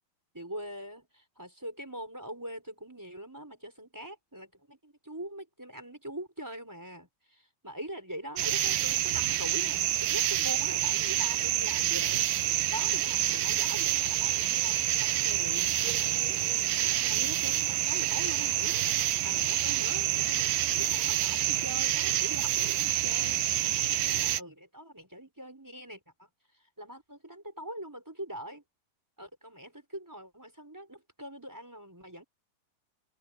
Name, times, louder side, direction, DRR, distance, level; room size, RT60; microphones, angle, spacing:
voice 1, 0.3-12.3 12.7-15.8 16.6-20.4 20.7-26.3 26.8-28.6 29.2-32.2, right 1 dB, 5° right, 4.7 m, -43 dB
sound 1, 8.4-24.4, right 12 dB, 70° right, 2.2 m, -28 dB
open air
omnidirectional pair, 5.2 m